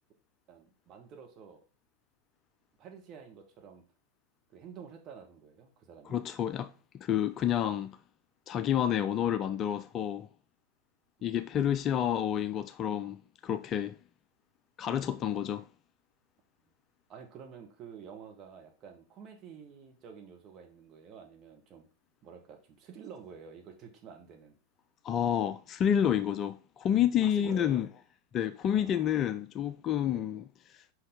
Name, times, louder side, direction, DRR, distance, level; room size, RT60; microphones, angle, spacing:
voice 1, 0.5-1.7 2.8-3.8 4.5-6.2 11.2-11.5 17.1-21.9 22.2-24.5 27.2-27.8 28.7-29.2 30.0-30.3, right 6 dB, 30° right, 1.7 m, -49 dB
voice 2, 6.0-8.0 8.5-10.3 11.2-14.0 14.8-15.7 25.0-27.9 28.3-30.5 30.7-30.8, left 10 dB, 30° left, 0.4 m, -29 dB
5.8 x 5.3 x 4.0 m
figure-of-eight pair, 90°, 0 cm